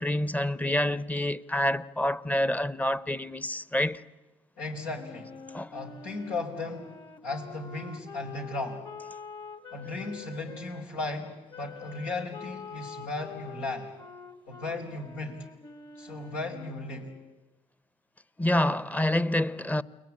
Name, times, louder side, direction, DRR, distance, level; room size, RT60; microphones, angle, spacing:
voice 1, 0.0-4.0 5.5-5.7 18.4-19.8, left 1 dB, 10° left, 1.0 m, -27 dB
voice 2, 4.6-5.4 5.7-8.9 9.7-13.9 14.5-15.5 16.0-17.1, left 3 dB, 85° left, 5.1 m, -36 dB
Wind instrument woodwind instrument, 4.9-10.8 11.5-17.4, left 4 dB, 35° left, 2.2 m, -46 dB
30.0 x 21.0 x 8.8 m
hypercardioid pair, 60°, 14 cm